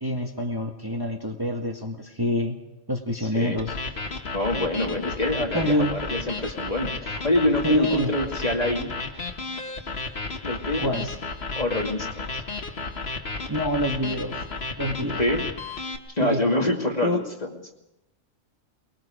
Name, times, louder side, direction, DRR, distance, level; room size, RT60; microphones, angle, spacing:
voice 1, 0.0-2.6 2.9-3.7 5.5-5.9 7.6-8.1 10.8-11.1 13.5-14.4 14.8-15.2 16.2-16.4 17.0-17.2, left 1 dB, 15° right, 2 dB, 1.7 m, -26 dB
voice 2, 3.2-3.6 4.3-8.9 10.4-11.0 11.6-12.4 15.2-15.5 16.1-17.8, left 1 dB, 30° left, 1 dB, 2.6 m, -26 dB
sound 1, 3.6-16.0, left 3 dB, 50° left, 1.9 m, -33 dB
23.5 x 21.5 x 5.1 m, 0.88 s
omnidirectional pair, 1.3 m